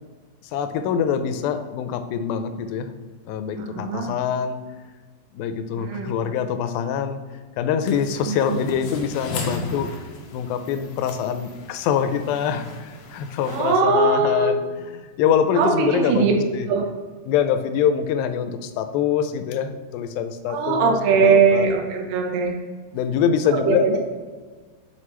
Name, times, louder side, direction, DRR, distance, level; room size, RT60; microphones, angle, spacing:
voice 1, 0.4-2.9 3.3-4.6 5.3-7.2 7.6-9.9 10.3-14.6 15.0-16.7 17.3-20.9 21.2-21.7 22.9-23.9, left 8 dB, 90° left, 9 dB, 2.4 m, -24 dB
voice 2, 3.6-4.1 5.8-6.1 8.3-8.6 13.5-14.5 15.6-16.3 16.7-16.9 20.5-22.6 23.5-24.0, right 5 dB, 80° right, 2 dB, 2.6 m, -20 dB
sound 1, 7.8-13.8, left 2 dB, 70° left, 2.1 m, -37 dB
6.0 x 5.6 x 3.2 m, 1.4 s
omnidirectional pair, 4.1 m